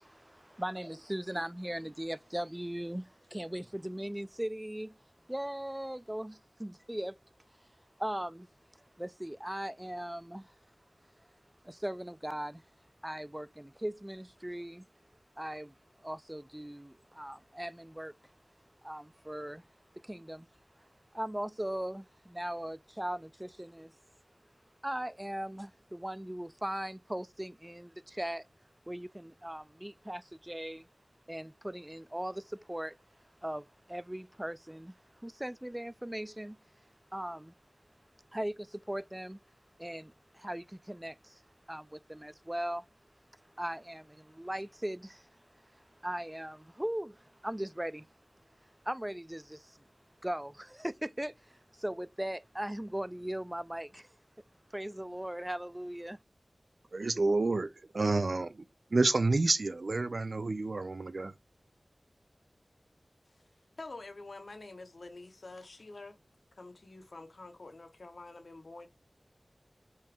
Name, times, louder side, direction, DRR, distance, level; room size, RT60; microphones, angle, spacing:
voice 1, 0.0-5.0 5.3-7.2 8.0-8.5 9.0-10.6 11.6-12.7 13.0-14.8 15.4-18.1 18.8-19.7 20.0-20.5 20.8-20.9 21.1-23.9 24.8-28.5 28.9-30.9 31.3-33.0 33.4-36.6 37.1-37.5 38.3-39.4 39.8-41.4 41.7-42.8 43.6-48.1 48.8-49.8 50.2-54.1 54.7-56.2, right 1 dB, 15° right, 0.3 m, -39 dB
voice 2, 56.9-58.6 58.9-61.3, right 3 dB, 75° right, 0.5 m, -29 dB
voice 3, 63.8-66.2 66.6-68.9, left 2 dB, 80° left, 0.9 m, -47 dB
5.4 x 2.8 x 3.3 m
wide cardioid pair, 60°, 0 cm